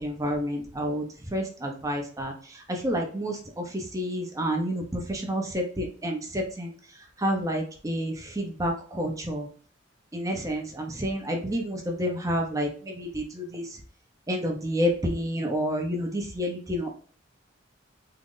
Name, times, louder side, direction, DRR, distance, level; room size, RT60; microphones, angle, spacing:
voice 1, 0.0-6.7 7.2-9.5 10.1-13.8 14.3-16.9, equal, 15° right, 1 dB, 0.7 m, -29 dB
3.7 x 2.1 x 3.7 m, 0.43 s
head